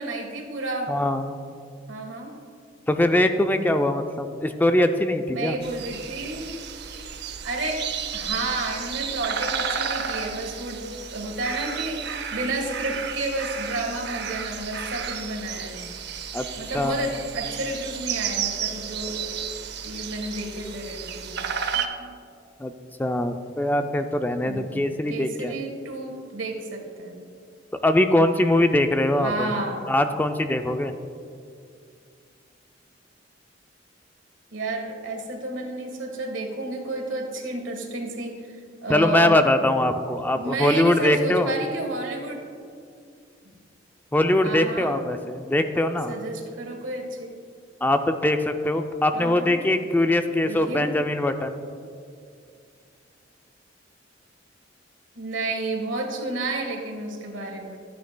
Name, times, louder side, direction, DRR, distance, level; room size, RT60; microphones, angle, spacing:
voice 1, 0.0-0.9 1.9-2.3 5.3-6.6 7.4-10.8 11.1-15.9 16.6-19.1 19.8-22.1 24.4-27.2 29.2-29.9 34.5-38.6 38.8-39.5 40.3-42.4 43.4-43.5 44.4-45.0 46.1-47.4 49.1-49.6 50.4-51.0 55.2-57.8, right 2 dB, 90° right, 2 dB, 1.4 m, -31 dB
voice 2, 0.9-1.4 2.9-5.6 16.3-16.5 16.7-17.0 22.6-22.7 23.0-25.5 27.8-29.5 29.9-30.9 38.9-41.5 44.1-46.1 47.8-51.6, left 1 dB, 10° left, 7 dB, 0.3 m, -22 dB
sound 1, 5.6-21.9, right 7 dB, 60° right, 0.6 m, -32 dB
13.5 x 9.2 x 2.2 m, 2.3 s
head